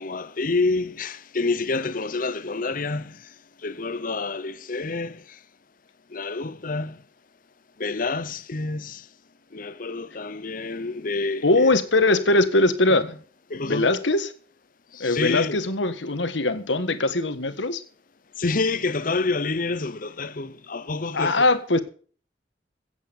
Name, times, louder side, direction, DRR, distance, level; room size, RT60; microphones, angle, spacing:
voice 1, 0.0-3.2 3.6-5.4 6.1-7.0 7.8-9.0 9.5-11.7 12.9-13.1 13.5-13.9 14.9-15.6 18.4-21.4, left 3 dB, 50° left, 0.8 m, -28 dB
voice 2, 11.4-13.0 13.7-14.3 15.0-17.8 21.1-21.8, left 2 dB, 90° left, 1.5 m, -21 dB
15.5 x 8.4 x 5.4 m
head